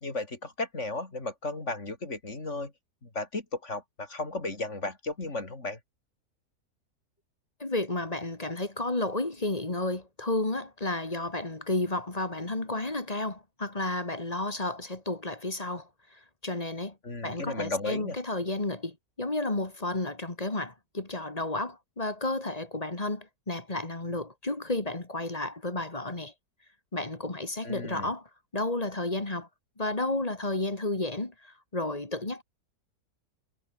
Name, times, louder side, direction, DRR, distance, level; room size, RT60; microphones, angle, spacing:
voice 1, 0.0-2.7 3.0-5.8 17.0-18.2 27.6-28.1, left 2 dB, 45° left, 4.1 m, -34 dB
voice 2, 7.6-17.0 17.2-26.3 26.9-28.3 28.5-29.5 29.8-32.4, left 2 dB, 25° left, 2.2 m, -32 dB
omnidirectional pair, 1.7 m